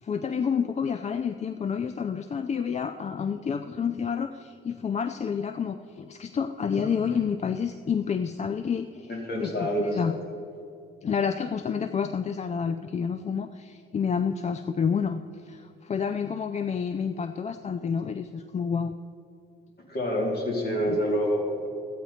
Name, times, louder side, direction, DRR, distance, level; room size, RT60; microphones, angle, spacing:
voice 1, 0.0-9.1 9.4-10.1 11.0-18.9, left 6 dB, 35° left, 10 dB, 0.5 m, -29 dB
voice 2, 9.1-10.1 19.9-21.7, equal, 50° left, -1 dB, 3.1 m, -27 dB
14.0 x 9.1 x 4.2 m, 2.6 s
cardioid pair, 90°, 20 cm